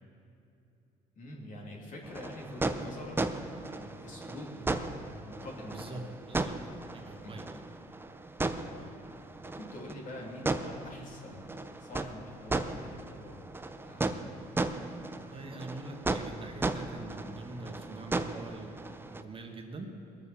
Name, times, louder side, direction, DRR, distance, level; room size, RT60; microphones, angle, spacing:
voice 1, 1.1-3.3 3.7-6.0 7.2-7.3 8.7-9.0 9.4-11.5 11.8-13.4 13.8-14.3, left 1 dB, 50° left, -1 dB, 3.0 m, -45 dB
sound 1, 2.0-19.2, right 2 dB, 15° right, 0.6 m, -36 dB
voice 2, 6.3-7.4 15.2-19.9, right 2 dB, 30° right, 2 dB, 1.5 m, -44 dB
20.5 x 7.1 x 6.9 m, 2.7 s
cardioid pair, 110°, 17 cm